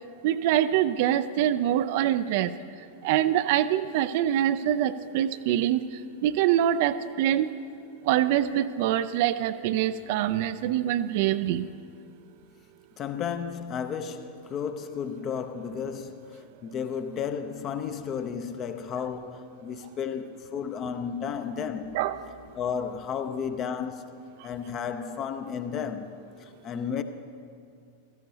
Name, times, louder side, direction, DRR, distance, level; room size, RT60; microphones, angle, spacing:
voice 1, 0.2-2.5 3.0-7.5 8.0-11.6 21.9-22.2 24.4-24.5, right 11 dB, 50° right, 0.4 m, -25 dB
voice 2, 13.0-22.0 22.5-27.0, left 7 dB, 30° left, 0.6 m, -33 dB
15.5 x 13.5 x 2.8 m
figure-of-eight pair, 90°, 0 cm